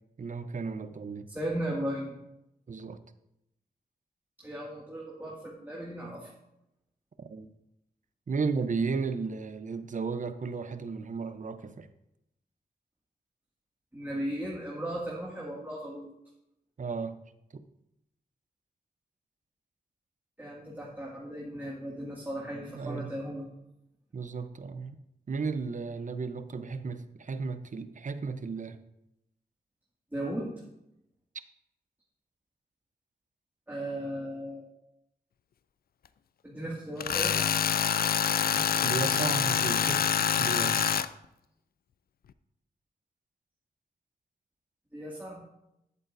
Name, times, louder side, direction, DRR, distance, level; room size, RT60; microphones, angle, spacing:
voice 1, 0.2-1.3 2.7-3.0 7.2-7.5 8.3-11.9 16.8-17.2 17.5-17.6 22.7-23.1 24.1-25.0 25.3-28.8 38.4-40.9, right 4 dB, 50° right, 10 dB, 0.7 m, -34 dB
voice 2, 1.3-2.2 4.4-6.3 13.9-16.1 20.4-23.4 30.1-30.5 33.7-34.7 36.4-37.4 44.9-45.4, right 1 dB, 10° right, -4 dB, 2.1 m, -36 dB
Tools, 37.0-41.1, left 8 dB, 65° left, 0.4 m, -26 dB
10.5 x 8.1 x 2.6 m, 0.85 s
cardioid pair, 50°, 17 cm